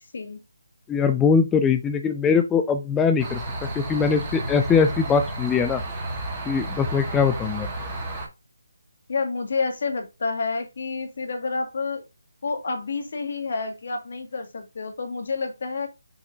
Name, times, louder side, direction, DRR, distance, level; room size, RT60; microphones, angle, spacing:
voice 1, 0.9-3.4 3.8-5.8 6.5-7.7, left 6 dB, 5° left, 0.4 m, -21 dB
sound 1, 3.2-8.3, right 1 dB, 10° right, 2.1 m, -32 dB
voice 2, 9.1-12.0 12.4-15.9, left 4 dB, 50° left, 2.1 m, -29 dB
6.5 x 5.7 x 2.7 m
hypercardioid pair, 170°, 0 cm